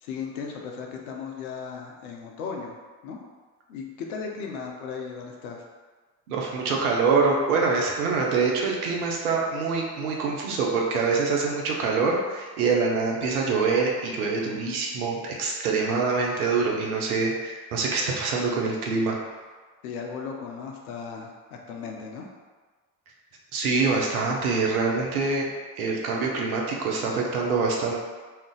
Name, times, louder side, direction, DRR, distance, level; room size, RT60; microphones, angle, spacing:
voice 1, 0.0-2.8 3.0-3.2 3.7-5.6 19.8-22.3, left 5 dB, 75° left, 1 dB, 0.6 m, -36 dB
voice 2, 6.3-19.2 23.5-25.5 25.8-27.9, right 4 dB, 80° right, -1 dB, 0.6 m, -25 dB
2.4 x 2.1 x 3.8 m, 1.4 s
figure-of-eight pair, 45°, 44 cm